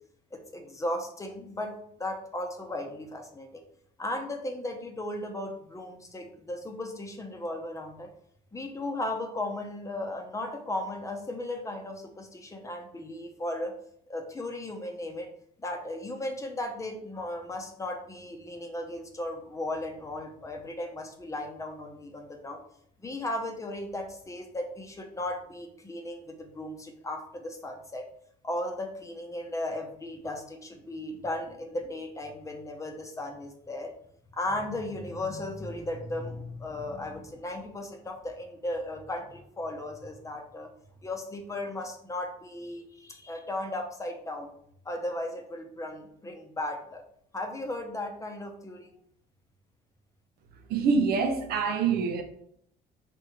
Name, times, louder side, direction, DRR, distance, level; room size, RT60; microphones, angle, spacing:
voice 1, 0.3-1.7 2.0-3.6 4.0-8.1 8.5-13.7 14.1-15.3 15.6-22.6 23.0-28.0 28.4-33.9 34.3-40.7 41.0-44.5 44.8-47.0 47.3-48.9, left 1 dB, 20° left, 0.7 m, -36 dB
voice 2, 50.7-52.2, right 5 dB, 65° right, 0.6 m, -25 dB
4.8 x 3.4 x 3.0 m
cardioid pair, 110°, 17 cm